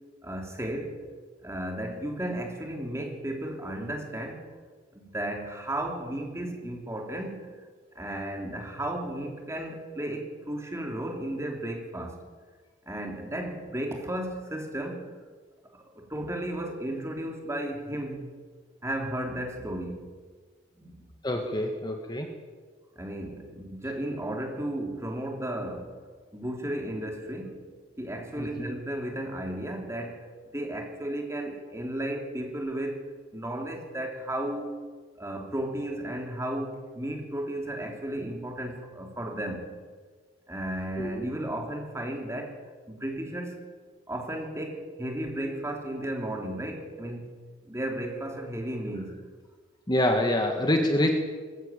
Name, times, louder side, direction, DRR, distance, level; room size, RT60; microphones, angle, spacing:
voice 1, 0.2-1.0 1.4-4.4 4.9-7.5 7.9-12.1 12.9-15.0 15.9-18.3 18.8-20.1 20.8-21.1 22.9-25.9 26.3-27.6 28.0-30.3 30.5-33.0 33.3-34.7 35.2-39.7 40.5-42.6 42.9-43.6 44.1-47.3 47.6-49.2, right 1 dB, 15° right, 2 dB, 3.3 m, -34 dB
voice 2, 21.2-22.3 28.4-28.7 41.0-41.1 49.9-51.1, left 1 dB, 20° left, 4 dB, 1.7 m, -26 dB
20.5 x 15.0 x 9.0 m, 1.5 s
head